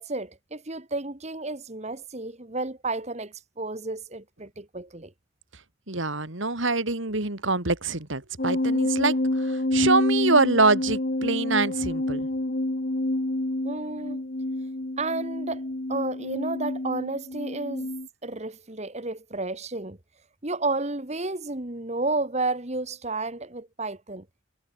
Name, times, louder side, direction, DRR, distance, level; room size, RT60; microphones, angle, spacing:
voice 1, 0.0-5.1 13.6-14.2 15.0-17.9 18.2-20.0 20.4-24.3, right 2 dB, 30° right, 1.7 m, -32 dB
voice 2, 5.9-9.2 9.5-12.3, right 3 dB, 65° right, 3.0 m, -24 dB
sound 1, 8.4-18.1, left 1 dB, 45° left, 1.3 m, -28 dB
head